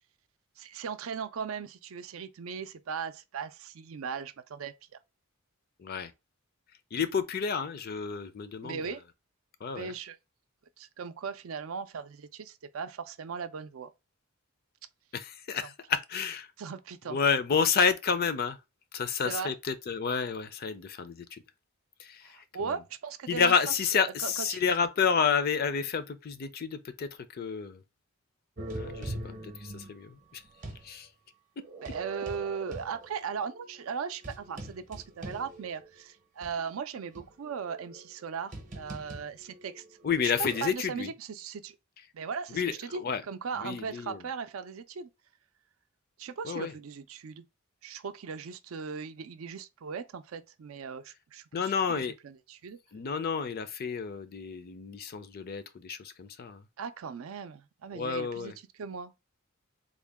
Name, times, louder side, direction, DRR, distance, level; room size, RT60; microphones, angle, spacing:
voice 1, 0.6-4.7 8.6-9.0 9.7-10.2 10.8-13.9 16.6-17.2 19.3-19.5 22.2-23.5 23.9-24.6 31.8-39.8 40.2-41.8 42.1-45.1 46.2-47.4 47.8-52.8 56.8-59.1, right 6 dB, 75° right, 0.4 m, -38 dB
voice 2, 5.8-6.1 6.9-8.9 9.6-9.9 15.1-16.5 17.1-18.6 18.9-21.4 22.0-22.8 23.3-27.8 28.7-30.4 30.8-31.1 40.0-41.1 42.5-43.2 43.6-44.2 46.4-46.7 51.5-52.1 52.9-56.6 57.9-58.5, left 6 dB, 45° left, 0.4 m, -30 dB
sound 1, 28.6-30.9 31.6-36.0 36.4-36.5 37.1-40.7, right 2 dB, 40° right, 0.7 m, -43 dB
3.6 x 2.2 x 3.4 m
head